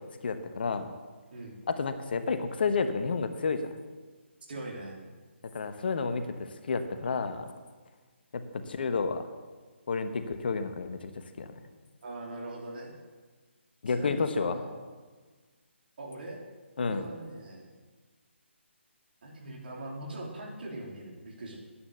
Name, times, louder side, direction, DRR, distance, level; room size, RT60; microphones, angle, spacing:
voice 1, 0.2-0.9 1.7-3.6 5.5-6.2 6.7-7.4 8.3-9.2 9.9-11.1 11.4-11.5 13.8-14.6 16.8-17.0, left 4 dB, 50° left, 9 dB, 1.0 m, -30 dB
voice 2, 4.5-5.0 12.0-12.9 13.9-14.7 16.0-16.4 16.8-17.7 19.2-21.6, right 2 dB, 50° right, 0 dB, 3.5 m, -41 dB
12.0 x 10.0 x 6.8 m, 1.4 s
figure-of-eight pair, 145°, 7 cm